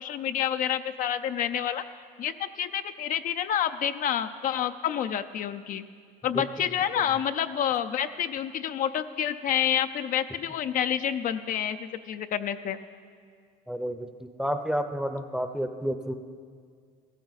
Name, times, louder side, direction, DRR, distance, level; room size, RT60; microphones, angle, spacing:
voice 1, 0.0-1.8 2.2-5.9 6.2-12.8, left 9 dB, 55° left, 9 dB, 0.5 m, -28 dB
voice 2, 13.7-16.1, equal, 5° right, 8 dB, 0.6 m, -30 dB
15.0 x 13.5 x 4.1 m, 2.1 s
cardioid pair, 110°, 17 cm